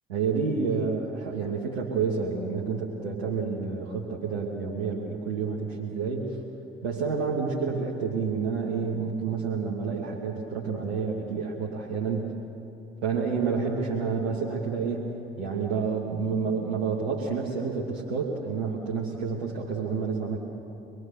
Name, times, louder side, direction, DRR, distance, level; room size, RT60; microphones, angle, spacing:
voice 1, 0.1-6.3 6.8-12.4 13.0-15.1 15.4-20.4, right 5 dB, 80° right, -3 dB, 1.7 m, -29 dB
25.0 x 20.5 x 6.8 m, 2.9 s
figure-of-eight pair, 40°, 31 cm